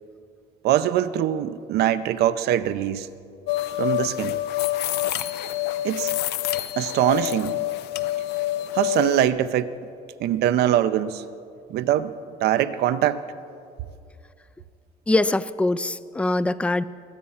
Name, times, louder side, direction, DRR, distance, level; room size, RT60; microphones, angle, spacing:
voice 1, 0.6-3.1 3.8-4.4 5.8-6.1 6.8-7.5 8.7-9.8 10.2-11.2 11.7-12.1 12.4-13.2, right 11 dB, 75° right, 12 dB, 0.6 m, -22 dB
sound 1, 3.5-9.3, left 15 dB, 75° left, 0.5 m, -27 dB
voice 2, 15.1-16.8, left 2 dB, 5° left, 16 dB, 0.3 m, -23 dB
22.0 x 8.5 x 5.7 m, 2.4 s
cardioid pair, 110°, 17 cm